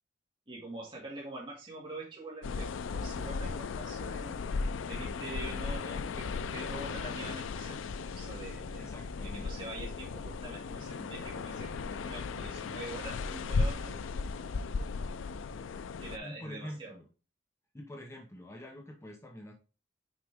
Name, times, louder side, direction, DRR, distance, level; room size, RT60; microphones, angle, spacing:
voice 1, 0.5-4.4 4.9-8.9 9.2-14.0 16.0-17.0, right 2 dB, 25° right, -4 dB, 2.1 m, -45 dB
sound 1, 2.4-16.2, left 4 dB, 80° left, 0.4 m, -36 dB
voice 2, 8.8-9.5 16.2-17.1 17.7-19.5, equal, 15° left, 2 dB, 0.8 m, -45 dB
6.2 x 5.0 x 3.5 m, 0.33 s
head